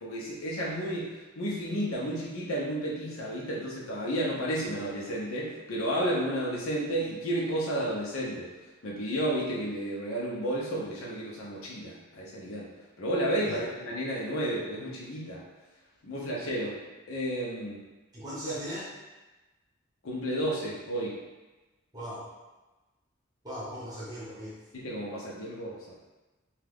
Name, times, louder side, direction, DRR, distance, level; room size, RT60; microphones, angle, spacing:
voice 1, 0.0-8.5 8.8-12.7 13.0-15.4 16.0-16.8 17.1-17.8 18.5-18.6 20.0-21.1 24.7-26.0, right 1 dB, 80° left, -5 dB, 0.7 m, -32 dB
voice 2, 18.1-18.9 21.9-22.3 23.4-24.6, equal, 20° right, -8 dB, 0.8 m, -38 dB
2.8 x 2.4 x 3.4 m, 1.1 s
head